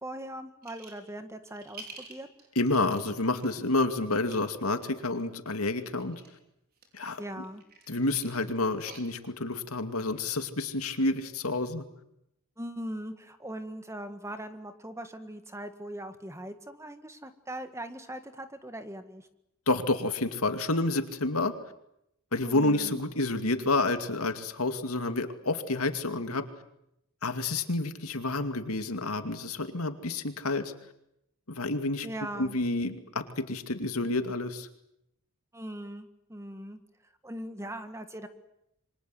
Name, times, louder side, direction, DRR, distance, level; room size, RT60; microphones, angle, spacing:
voice 1, 0.0-2.3 7.2-7.6 12.6-19.3 22.4-23.0 32.0-32.6 35.5-36.8 37.2-38.3, right 1 dB, 15° right, 9 dB, 1.7 m, -40 dB
sound 1, 0.6-1.1 1.4-3.6 4.1-4.4 5.6-6.3 6.8-9.6, right 4 dB, 45° right, 5.2 m, -49 dB
voice 2, 2.6-6.2 6.9-7.2 7.9-11.8 19.7-21.5 22.3-26.4 27.2-30.7 31.5-32.1 32.4-34.7, left 2 dB, 85° left, 8 dB, 2.4 m, -29 dB
27.5 x 24.5 x 7.9 m, 0.79 s
head